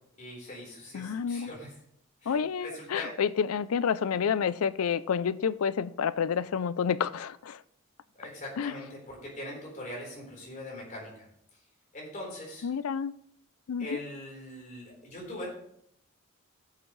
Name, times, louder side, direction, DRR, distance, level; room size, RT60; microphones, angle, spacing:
voice 1, 0.2-1.7 2.2-3.1 8.2-11.3 11.9-12.7 13.8-15.5, left 1 dB, 40° left, -3 dB, 4.3 m, -41 dB
voice 2, 0.9-1.5 2.3-7.6 8.6-8.7 12.6-13.1 13.7-14.0, left 7 dB, 85° left, 18 dB, 0.4 m, -29 dB
14.0 x 7.9 x 3.2 m, 0.70 s
head